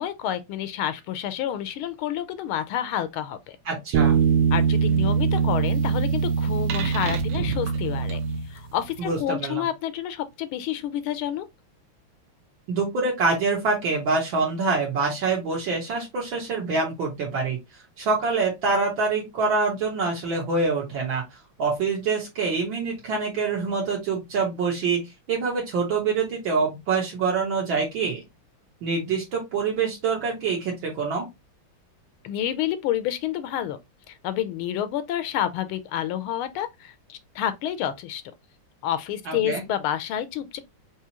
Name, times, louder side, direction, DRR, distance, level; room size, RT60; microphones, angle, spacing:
voice 1, 0.0-3.6 4.5-8.2 8.5-11.4 32.2-33.8 34.1-38.2 38.8-40.6, left 11 dB, 80° left, 1.4 m, -29 dB
voice 2, 3.7-4.2 9.0-9.6 12.7-17.6 18.0-21.2 21.6-25.0 25.3-28.2 28.8-31.3 39.3-39.6, right 4 dB, 65° right, 1.9 m, -25 dB
sound 1, 3.9-8.9, right 6 dB, 90° right, 1.6 m, -22 dB
4.8 x 3.0 x 2.9 m
omnidirectional pair, 2.3 m